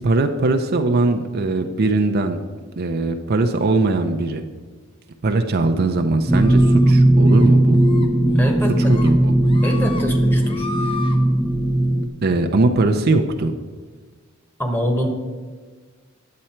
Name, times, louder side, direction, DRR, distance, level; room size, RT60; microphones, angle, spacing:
voice 1, 0.0-2.4 2.8-4.4 5.2-7.8 8.9-9.3 12.2-13.6, right 2 dB, 50° right, 5 dB, 0.5 m, -20 dB
sound 1, 6.3-6.9 7.3-7.5 7.8-8.1 8.4-9.1 9.4-10.0 10.4-11.2, left 3 dB, 25° left, 0.8 m, -34 dB
sound 2, 6.3-12.1, right 1 dB, 5° right, 0.5 m, -17 dB
voice 2, 8.3-9.0 9.6-10.7 14.6-15.1, equal, 10° left, 3 dB, 1.2 m, -24 dB
9.5 x 7.6 x 4.4 m, 1.4 s
head